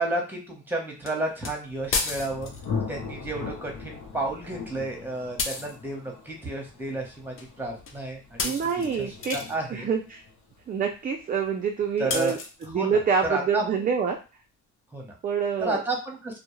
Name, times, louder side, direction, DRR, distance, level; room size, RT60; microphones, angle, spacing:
voice 1, 0.0-2.5 2.9-8.6 9.0-9.9 12.0-12.4 12.7-13.9 14.9-15.2 15.6-16.4, right 2 dB, 5° right, 1 dB, 0.9 m, -31 dB
sound 1, 1.1-1.2 1.4-1.5 1.9-2.7 5.4-5.8 7.4-7.5 7.9-8.0 8.4-9.6 12.1-12.7, left 4 dB, 45° left, 0.5 m, -31 dB
Thunder, 1.3-12.9, left 5 dB, 85° left, 0.7 m, -40 dB
voice 2, 8.4-9.4 9.7-10.2 10.7-14.2 15.2-15.8, right 6 dB, 30° right, 3 dB, 0.3 m, -26 dB
2.2 x 2.0 x 3.0 m, 0.32 s
cardioid pair, 90°, 30 cm